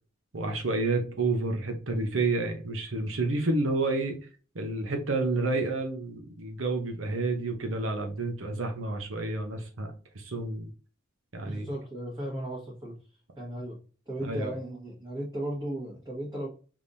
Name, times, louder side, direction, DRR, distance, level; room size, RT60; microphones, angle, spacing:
voice 1, 0.3-4.2 4.5-9.9 10.1-10.7 11.3-11.7 14.2-14.5, right 2 dB, 85° right, 0.9 m, -29 dB
voice 2, 11.4-13.0 13.4-13.8 14.1-16.5, right 1 dB, 20° right, 1.5 m, -36 dB
5.1 x 3.5 x 2.7 m
head